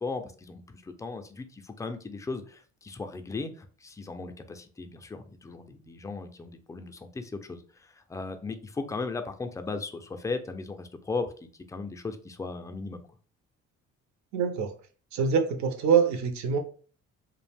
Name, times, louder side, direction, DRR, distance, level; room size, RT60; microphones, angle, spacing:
voice 1, 0.0-13.0, left 3 dB, 10° left, 7 dB, 0.3 m, -37 dB
voice 2, 14.3-14.7 15.1-16.6, right 6 dB, 70° right, 5 dB, 0.6 m, -24 dB
2.4 x 2.1 x 3.3 m, 0.40 s
cardioid pair, 90°, 30 cm